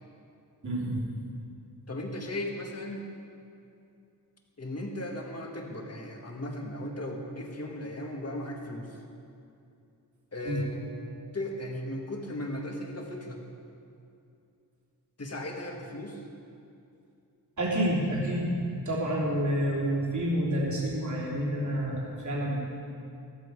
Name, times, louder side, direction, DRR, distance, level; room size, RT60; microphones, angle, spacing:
voice 1, 0.6-1.0 10.4-10.6 17.6-22.6, equal, 45° right, -5 dB, 3.2 m, -29 dB
voice 2, 1.9-3.1 4.6-9.0 10.3-10.8 11.3-13.4 15.2-16.2, left 1 dB, 40° left, 1 dB, 1.9 m, -36 dB
14.0 x 14.0 x 4.9 m, 2.6 s
wide cardioid pair, 115°, 40 cm